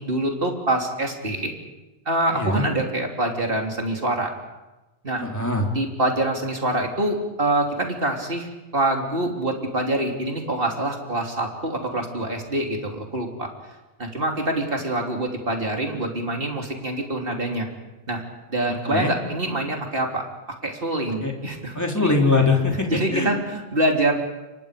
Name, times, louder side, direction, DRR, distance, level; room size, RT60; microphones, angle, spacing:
voice 1, 0.0-1.5 2.1-4.3 5.0-5.2 5.7-8.5 8.7-13.5 14.0-17.7 18.1-18.2 18.5-20.2 20.6-22.1 22.9-24.1, right 1 dB, 45° right, 2 dB, 3.5 m, -25 dB
voice 2, 2.3-2.6 5.2-5.7 18.9-19.1 21.2-21.3 21.8-23.3, left 3 dB, 10° left, 1 dB, 3.5 m, -22 dB
29.5 x 24.5 x 5.2 m, 1.1 s
omnidirectional pair, 1.4 m